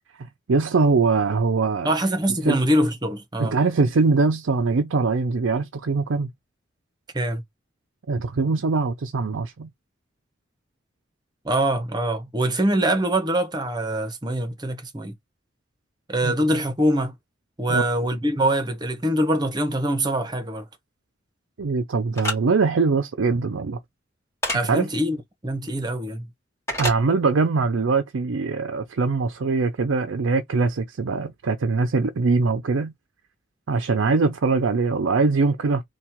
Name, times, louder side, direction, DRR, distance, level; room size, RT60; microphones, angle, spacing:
voice 1, 0.2-1.9 2.5-2.6 3.4-6.3 8.1-9.7 16.2-16.3 17.7-17.8 21.6-23.8 24.7-24.9 26.8-32.9 33.7-35.8, right 4 dB, 90° right, 0.6 m, -22 dB
voice 2, 1.8-3.6 7.1-7.4 11.4-15.1 16.1-17.1 17.6-20.7 24.5-25.2 25.4-26.3, right 1 dB, 20° right, 0.9 m, -23 dB
sound 1, 22.2-22.4 24.4-24.6 26.7-27.0, left 1 dB, 15° left, 2.0 m, -26 dB
3.5 x 2.3 x 4.4 m
head